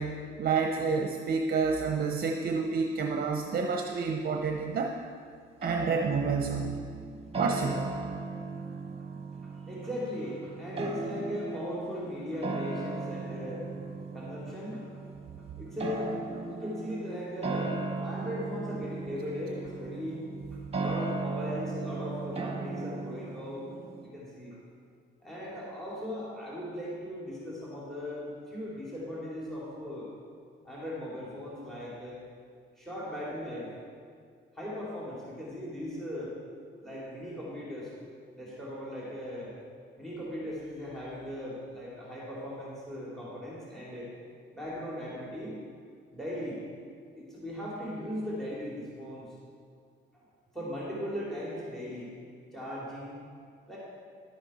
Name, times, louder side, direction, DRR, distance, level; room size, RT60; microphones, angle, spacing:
voice 1, 0.0-4.9 5.6-6.8 7.4-7.9, right 5 dB, 50° right, 3 dB, 0.7 m, -29 dB
sound 1, 5.6-24.1, right 3 dB, 30° right, 1.2 m, -37 dB
voice 2, 9.4-13.7 14.1-15.1 15.6-20.2 20.5-23.7 24.0-24.6 25.2-30.1 30.6-32.2 32.8-33.7 34.5-36.4 36.8-37.9 38.3-39.5 40.0-44.1 44.5-45.6 46.1-46.6 47.2-49.4 50.5-52.1 52.5-53.2 53.7-53.8, left 1 dB, ahead, -6 dB, 2.5 m, -38 dB
11.0 x 8.7 x 4.2 m, 2.2 s
cardioid pair, 90°, 20 cm